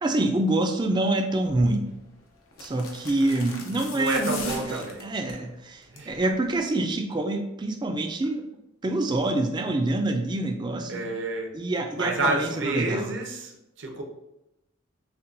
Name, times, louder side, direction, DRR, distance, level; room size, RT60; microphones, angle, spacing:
voice 1, 0.0-1.9 2.6-8.5 8.8-11.1 11.5-13.1, right 2 dB, 20° right, 5 dB, 0.3 m, -26 dB
sound 1, 1.5-1.7 2.5-5.4 5.8-6.2 6.4-6.5, left 3 dB, 90° left, 0.8 m, -39 dB
voice 2, 3.9-5.1 5.9-6.2 10.9-11.5 11.9-14.0, right 2 dB, 60° right, 1 dB, 0.7 m, -29 dB
6.7 x 2.2 x 2.5 m, 0.90 s
head